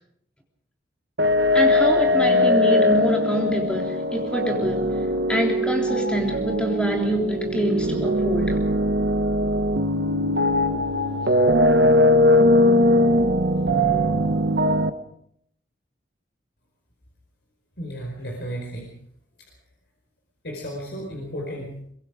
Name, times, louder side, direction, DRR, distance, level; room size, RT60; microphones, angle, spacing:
sound 1, 1.2-14.9, left 1 dB, 70° right, 1.2 m, -20 dB
voice 1, 1.5-5.0 5.3-8.8, equal, 5° left, 1 dB, 3.4 m, -25 dB
voice 2, 17.8-18.9 20.4-21.8, equal, 65° left, -1 dB, 4.9 m, -33 dB
23.5 x 22.0 x 5.1 m, 0.71 s
head